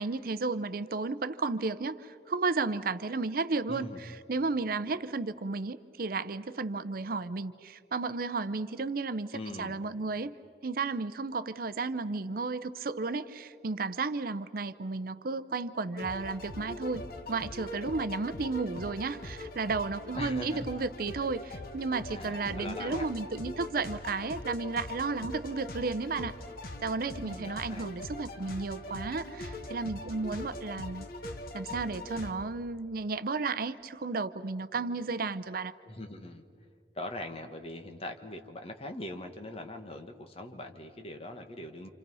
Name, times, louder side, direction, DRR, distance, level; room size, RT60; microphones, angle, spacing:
voice 1, 0.0-10.3 10.6-17.0 17.3-26.4 26.8-31.1 31.5-35.7, right 3 dB, 55° right, 13 dB, 0.6 m, -33 dB
voice 2, 3.7-4.0 9.3-9.8 20.2-20.6 22.1-23.0 27.2-27.9 35.8-36.4 36.9-41.9, left 1 dB, 35° left, 5 dB, 1.6 m, -41 dB
sound 1, 16.0-32.3, left 1 dB, 55° left, 1.5 m, -42 dB
28.5 x 27.5 x 5.5 m, 2.3 s
head